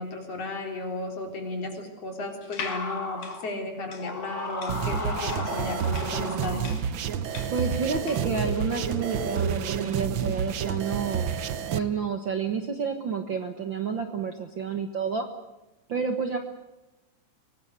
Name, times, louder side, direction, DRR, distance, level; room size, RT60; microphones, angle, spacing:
voice 1, 0.0-6.6, left 2 dB, 50° left, 3 dB, 4.7 m, -34 dB
sound 1, 2.4-8.4, left 6 dB, 80° left, 3.7 m, -41 dB
sound 2, 2.6-3.5 4.0-6.9 7.8-9.5, left 2 dB, 30° left, 3.6 m, -36 dB
sound 3, 4.7-11.8, right 7 dB, 80° right, 1.1 m, -29 dB
voice 2, 7.5-11.4 11.7-15.3 15.9-16.4, right 6 dB, 50° right, 5 dB, 1.6 m, -29 dB
24.0 x 19.0 x 8.3 m, 1.0 s
omnidirectional pair, 3.6 m